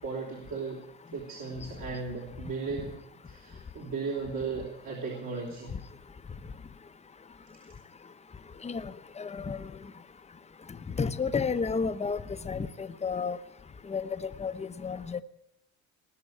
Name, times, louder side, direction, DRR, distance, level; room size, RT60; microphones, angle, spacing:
voice 1, 0.0-0.8 1.1-3.0 3.3-5.8, right 4 dB, 60° right, -3 dB, 3.5 m, -36 dB
voice 2, 9.2-9.7 11.0-13.4 13.9-15.2, left 5 dB, 15° left, 11 dB, 0.8 m, -31 dB
19.5 x 6.7 x 9.4 m, 0.84 s
supercardioid pair, 95°, 38 cm